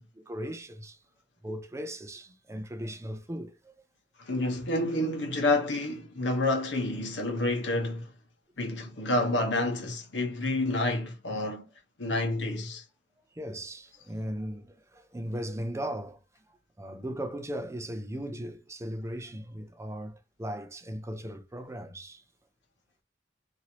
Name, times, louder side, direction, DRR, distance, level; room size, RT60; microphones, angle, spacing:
voice 1, 0.2-1.0 1.4-3.7 13.4-16.2 16.8-22.2, equal, 15° right, 0.4 m, -37 dB
voice 2, 4.2-8.1 8.6-11.6 12.0-12.8, left 2 dB, 85° left, 1.1 m, -29 dB
3.0 x 2.6 x 2.9 m
head